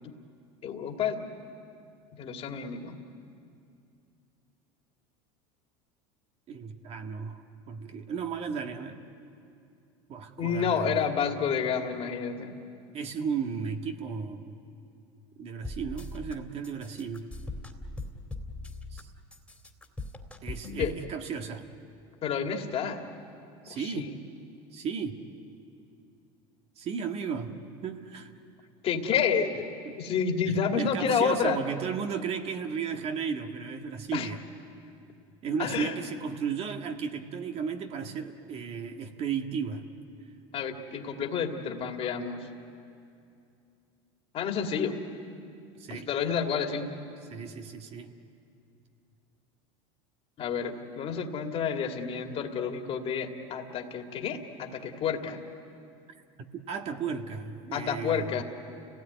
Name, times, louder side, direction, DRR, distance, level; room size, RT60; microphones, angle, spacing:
voice 1, 0.6-1.3 2.1-3.0 10.4-12.5 20.8-20.9 22.2-23.1 23.7-24.2 28.8-29.7 30.0-31.6 34.1-34.3 35.6-35.9 40.5-42.5 44.3-45.0 45.9-46.9 50.4-55.4 57.7-58.4, left 6 dB, 40° left, 4 dB, 2.3 m, -29 dB
voice 2, 6.5-9.0 10.1-11.0 12.9-14.7 15.4-17.3 18.9-19.1 20.4-21.7 23.6-24.1 24.7-25.2 26.8-28.3 29.8-29.9 30.4-34.4 35.4-39.8 45.8-46.1 47.3-48.1 56.7-58.4, right 6 dB, 45° right, 5 dB, 1.8 m, -34 dB
sound 1, 15.6-16.3 16.6-19.0 19.3-21.0, left 2 dB, 5° left, 2.4 m, -39 dB
29.5 x 17.5 x 9.4 m, 2.5 s
supercardioid pair, 110°, 14 cm